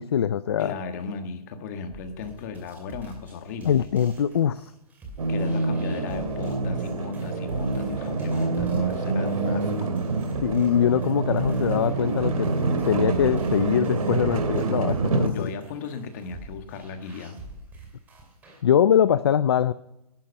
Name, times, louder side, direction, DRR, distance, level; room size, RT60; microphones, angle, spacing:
voice 1, 0.0-0.7 3.6-4.7 10.4-12.5 12.9-15.5 18.6-19.7, left 9 dB, 40° left, 15 dB, 0.5 m, -22 dB
voice 2, 0.6-3.9 5.3-10.0 10.3-10.4 15.3-17.4, left 5 dB, 25° left, 7 dB, 1.6 m, -36 dB
sound 1, 1.9-18.6, right 1 dB, 10° right, 2.5 m, -46 dB
sound 2, 5.2-15.3, right 3 dB, 70° right, 2.8 m, -26 dB
17.5 x 12.0 x 5.4 m, 0.90 s
hypercardioid pair, 170°, 19 cm